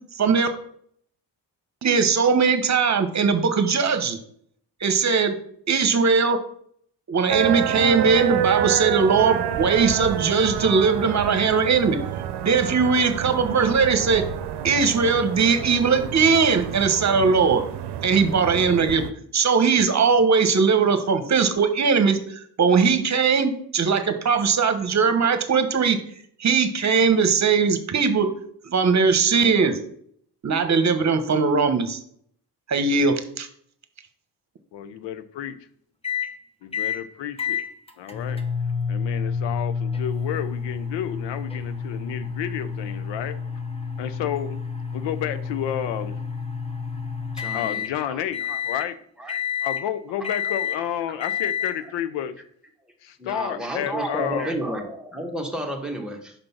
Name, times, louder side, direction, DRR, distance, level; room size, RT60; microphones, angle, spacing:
voice 1, 0.2-0.5 1.8-4.2 4.8-5.3 5.7-6.4 7.1-12.0 12.4-14.2 14.6-17.6 18.0-19.1 19.3-26.0 26.4-28.3 28.6-29.8 30.4-32.0 32.7-33.5, right 5 dB, 40° right, 8 dB, 1.1 m, -20 dB
sound 1, 7.3-19.1, right 10 dB, 65° right, 0.7 m, -28 dB
voice 2, 34.7-35.6 36.6-37.6 38.0-38.4 38.9-43.4 44.0-44.6 44.9-46.2 47.5-49.0 49.6-52.4 53.0-54.5, left 10 dB, 90° left, 13 dB, 0.7 m, -31 dB
sound 2, 36.0-36.3 36.7-37.0 37.4-47.9 48.3-48.9 49.3-49.8 50.2-50.8 51.2-51.8, left 6 dB, 15° left, 0.8 m, -29 dB
voice 3, 47.3-48.6 49.2-49.4 50.2-50.6 51.2-51.3 51.8-51.9 53.2-56.3, right 1 dB, ahead, 1 dB, 1.5 m, -32 dB
5.3 x 4.4 x 5.7 m, 0.64 s
cardioid pair, 75°, 42 cm